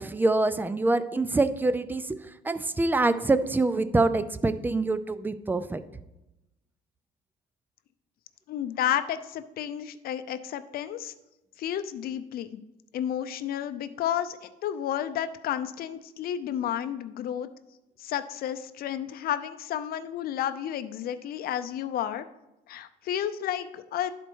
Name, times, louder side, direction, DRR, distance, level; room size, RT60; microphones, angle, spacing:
voice 1, 0.0-2.2 2.4-5.8, right 2 dB, 10° right, 13 dB, 0.4 m, -25 dB
voice 2, 8.5-11.1 11.6-12.6 12.9-17.5 18.0-22.3 22.7-24.1, left 10 dB, 60° left, 11 dB, 0.6 m, -31 dB
11.0 x 4.4 x 4.6 m, 0.95 s
cardioid pair, 110°, 17 cm